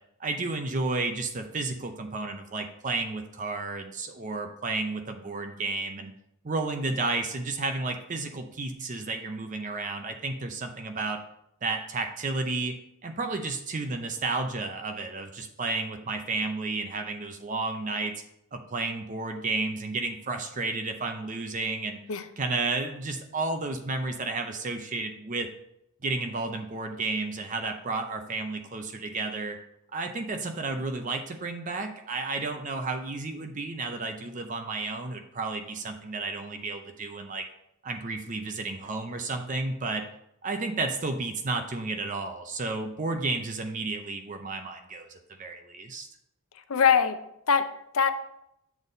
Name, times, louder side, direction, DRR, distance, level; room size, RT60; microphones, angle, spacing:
voice 1, 0.2-6.1 6.4-11.2 11.6-12.8 13.0-18.1 18.5-22.0 22.4-25.5 26.0-29.6 29.9-37.4 37.8-40.0 40.4-45.1 45.4-46.1, right 3 dB, 35° right, 6 dB, 0.5 m, -32 dB
voice 2, 46.7-47.2 47.5-48.1, left 6 dB, 70° left, 10 dB, 0.6 m, -22 dB
7.2 x 4.1 x 5.0 m, 0.78 s
head